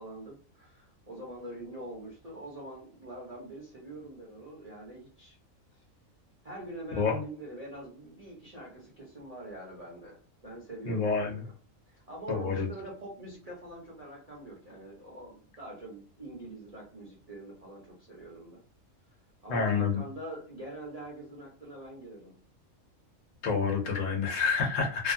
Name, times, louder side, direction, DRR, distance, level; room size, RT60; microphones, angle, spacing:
voice 1, 0.0-5.3 5.7-5.8 6.4-11.6 11.9-18.6 19.4-22.4, right 1 dB, 30° right, -5 dB, 0.8 m, -44 dB
voice 2, 10.9-11.4 12.3-12.7 19.5-20.0 23.4-25.1, left 5 dB, 70° left, 2 dB, 1.2 m, -28 dB
2.9 x 2.3 x 2.6 m, 0.42 s
omnidirectional pair, 1.4 m